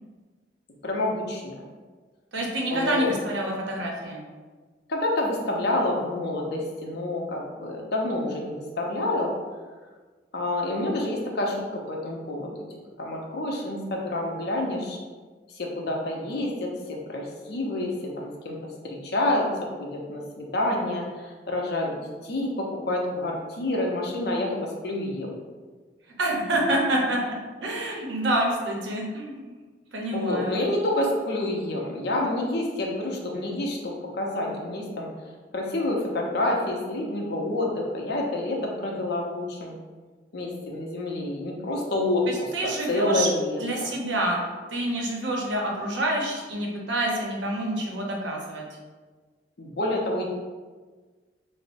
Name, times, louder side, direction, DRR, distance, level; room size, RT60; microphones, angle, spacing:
voice 1, 0.8-1.5 2.7-3.1 4.9-9.3 10.3-12.6 13.0-15.0 15.5-25.4 30.1-35.1 35.5-39.7 40.3-42.5 42.9-43.9 49.6-50.2, left 1 dB, 60° left, -1 dB, 0.6 m, -28 dB
voice 2, 2.3-4.2 26.2-27.4 27.6-29.5 29.9-30.6 42.3-43.3 43.6-44.4 44.7-48.6, right 1 dB, 80° right, -1 dB, 0.7 m, -27 dB
5.2 x 2.0 x 2.5 m, 1.4 s
head